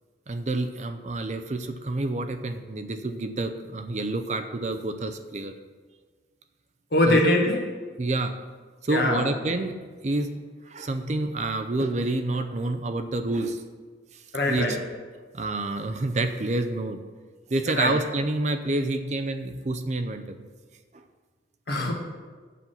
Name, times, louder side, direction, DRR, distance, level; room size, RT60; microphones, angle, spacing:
voice 1, 0.3-5.5 7.1-7.2 8.0-8.3 8.8-9.7 10.0-10.3 10.7-13.6 14.1-14.8 15.3-17.0 17.5-20.5 20.9-21.0, right 2 dB, 40° right, 8 dB, 0.5 m, -28 dB
voice 2, 6.9-7.6 8.9-9.3 14.3-14.8 17.7-18.0 21.7-21.9, left 1 dB, 60° left, 1 dB, 1.5 m, -22 dB
8.3 x 7.3 x 5.6 m, 1.4 s
head